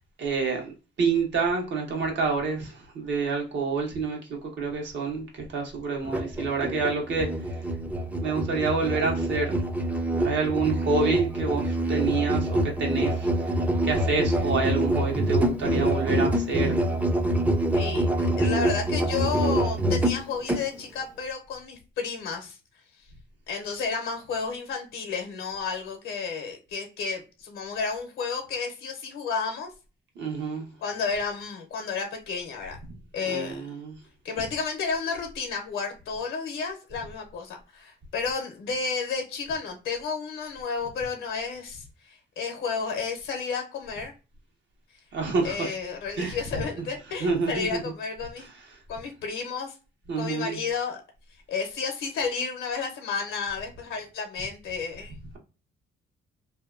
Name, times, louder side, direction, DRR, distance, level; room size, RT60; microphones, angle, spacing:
voice 1, 0.2-0.7 1.0-4.2 4.6-7.3 8.2-9.6 10.2-13.3 13.8-16.8 30.2-30.7 33.2-33.9 45.1-45.7 46.2-46.4 47.2-47.8 50.1-50.6, right 4 dB, 65° right, 1.1 m, -28 dB
Musical instrument, 6.0-20.7, right 1 dB, 5° right, 0.4 m, -26 dB
voice 2, 17.7-18.1 18.4-22.6 23.5-29.7 30.8-32.8 33.1-33.7 34.2-44.1 45.4-48.5 48.9-49.7 50.2-51.0 51.5-55.1, left 5 dB, 85° left, 0.7 m, -32 dB
2.7 x 2.2 x 2.4 m
cardioid pair, 90°, 20 cm